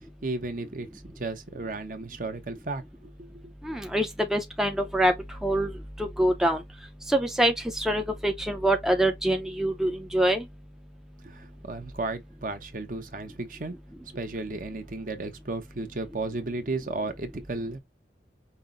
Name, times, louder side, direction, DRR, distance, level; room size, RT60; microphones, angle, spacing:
voice 1, 0.2-3.3 11.2-13.8 14.1-17.8, right 3 dB, 50° right, 0.8 m, -34 dB
voice 2, 3.6-6.6 7.1-10.5, right 1 dB, 5° right, 0.5 m, -25 dB
5.5 x 2.0 x 3.7 m
head